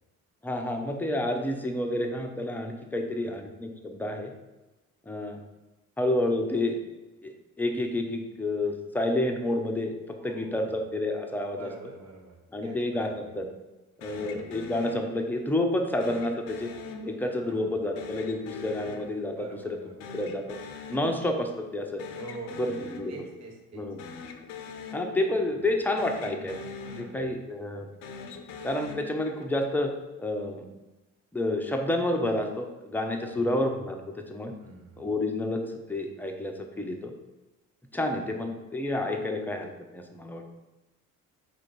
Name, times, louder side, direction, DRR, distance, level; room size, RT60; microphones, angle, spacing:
voice 1, 0.4-4.3 5.1-5.4 6.0-6.8 7.2-11.7 12.5-13.5 14.0-16.7 17.0-19.8 20.1-20.6 20.9-22.0 22.6-23.1 23.7-24.0 24.9-26.6 27.0-27.9 28.6-29.9 30.2-30.7 31.3-34.5 35.0-35.6 35.9-37.1 37.9-40.4, left 1 dB, 5° left, 3 dB, 0.5 m, -29 dB
voice 2, 3.1-3.4 10.2-10.7 11.5-12.4 12.6-13.0 13.3-13.4 14.1-14.4 17.4-17.8 19.3-20.0 22.1-22.7 23.1-23.8 25.3-25.7 26.8-27.3 33.2-33.6 34.6-35.1, right 2 dB, 35° right, 0 dB, 1.3 m, -46 dB
sound 1, 14.0-15.5 16.0-17.5 18.0-19.7 20.0-21.5 21.8-23.5 23.9-25.7 26.0-27.5 27.9-29.7, left 4 dB, 65° left, 0.7 m, -42 dB
4.4 x 2.5 x 4.5 m, 1.1 s
figure-of-eight pair, 50°, 45 cm